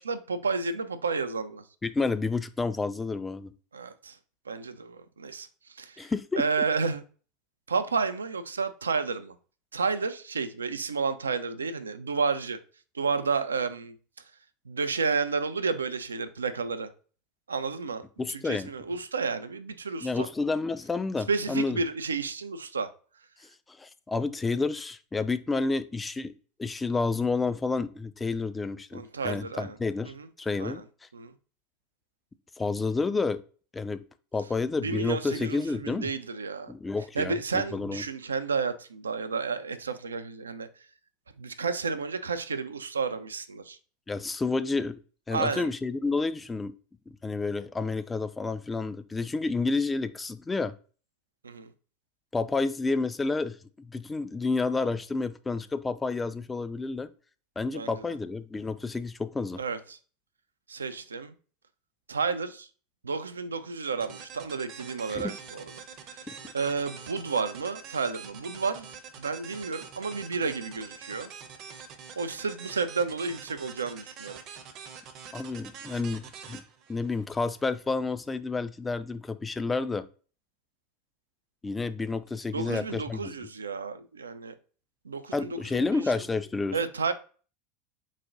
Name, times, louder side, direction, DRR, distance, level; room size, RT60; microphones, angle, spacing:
voice 1, 0.0-1.6 3.7-4.2 4.5-6.1 6.4-7.0 7.7-9.4 9.7-12.6 12.9-14.0 14.7-16.9 17.5-20.3 21.3-22.9 28.9-29.7 30.0-30.3 30.6-30.8 31.1-31.3 34.8-36.7 37.2-40.7 41.4-43.8 45.3-45.7 51.4-51.7 57.7-58.0 59.6-60.0 60.7-61.3 62.1-62.7 63.0-65.7 66.1-66.3 66.5-68.9 69.2-71.3 72.2-74.4 82.5-84.5 85.0-86.0 86.7-87.1, right 4 dB, 85° right, 0.4 m, -31 dB
voice 2, 1.8-3.5 6.0-6.4 18.2-18.7 20.0-21.8 23.7-26.3 26.6-30.8 32.6-33.4 33.7-34.0 34.3-36.1 36.7-38.0 44.1-45.0 45.3-46.7 47.1-50.7 52.3-57.1 57.6-59.6 65.1-65.3 66.3-66.4 75.3-76.6 76.9-80.1 81.6-83.3 85.3-86.8, left 3 dB, 15° left, 0.4 m, -30 dB
sound 1, 64.0-77.7, right 6 dB, 45° right, 0.7 m, -45 dB
4.0 x 2.1 x 3.8 m
figure-of-eight pair, 80°, 0 cm